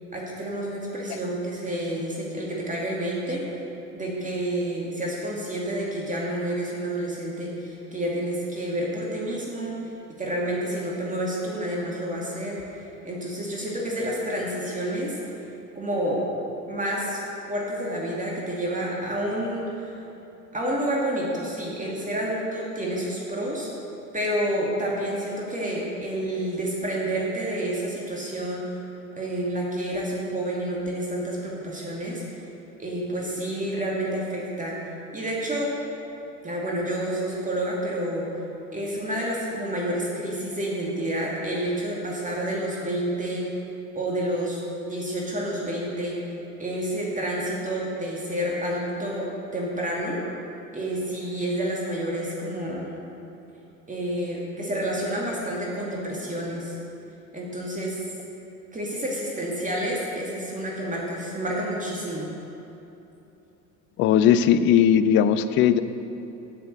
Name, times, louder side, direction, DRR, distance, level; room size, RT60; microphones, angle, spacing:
voice 1, 0.1-3.4 3.9-9.8 10.2-15.2 15.8-16.3 16.7-17.2 17.5-20.0 20.5-23.7 24.1-28.8 29.2-32.2 32.8-34.8 35.1-35.7 36.4-38.3 38.7-43.4 43.9-44.6 44.9-46.2 46.6-50.2 50.7-52.9 53.9-56.8 57.3-58.0 58.7-62.3, right 1 dB, 15° right, -4 dB, 2.4 m, -29 dB
voice 2, 64.0-65.8, left 9 dB, 25° left, 12 dB, 0.4 m, -18 dB
15.5 x 6.9 x 6.7 m, 3.0 s
figure-of-eight pair, 70°, 50 cm